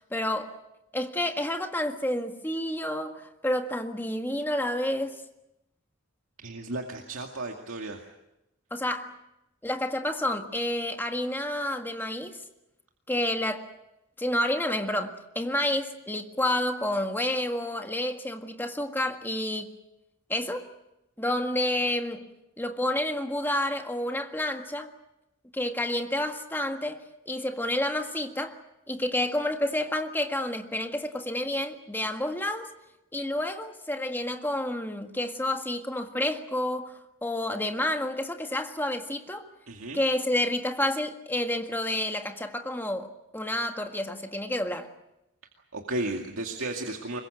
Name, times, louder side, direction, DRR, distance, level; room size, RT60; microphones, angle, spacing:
voice 1, 0.1-0.6 0.9-5.2 8.7-9.2 9.6-12.4 13.1-13.7 14.2-19.8 20.3-20.7 21.2-22.3 22.6-24.9 25.5-28.6 28.9-32.7 33.1-39.5 39.9-44.9, left 1 dB, 10° left, 1.7 m, -29 dB
voice 2, 6.4-8.0 39.7-40.0 45.7-47.2, right 2 dB, 75° right, 2.2 m, -34 dB
25.5 x 22.5 x 7.8 m
head